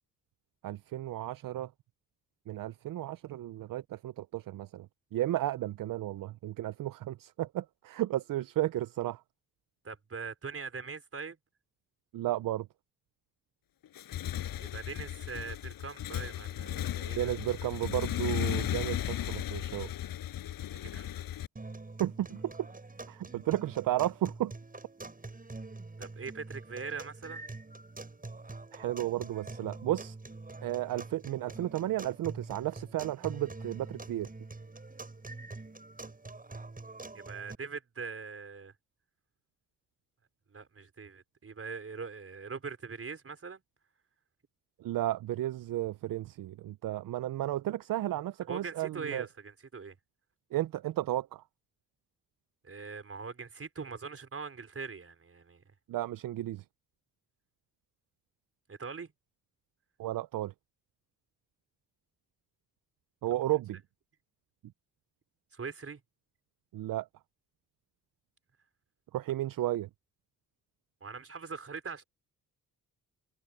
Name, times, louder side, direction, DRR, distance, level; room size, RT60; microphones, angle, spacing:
voice 1, 0.6-1.7 2.5-4.9 5.1-9.2 12.1-12.7 17.2-19.9 22.0-22.5 23.1-24.5 28.7-30.2 30.6-34.3 44.8-49.2 50.5-51.4 55.9-56.6 60.0-60.5 63.2-63.8 66.7-67.1 69.1-69.9, right 14 dB, 70° right, 0.7 m, -33 dB
voice 2, 9.8-11.4 14.6-17.4 20.9-21.3 26.0-27.4 37.1-38.7 40.5-43.6 48.5-50.0 52.6-55.6 58.7-59.1 65.5-66.0 71.0-72.0, right 5 dB, 40° right, 4.6 m, -42 dB
Motorcycle / Engine, 13.8-21.5, left 12 dB, 85° left, 5.7 m, -35 dB
sound 1, 21.6-37.6, right 3 dB, 25° right, 8.0 m, -45 dB
cardioid pair, 70°, 34 cm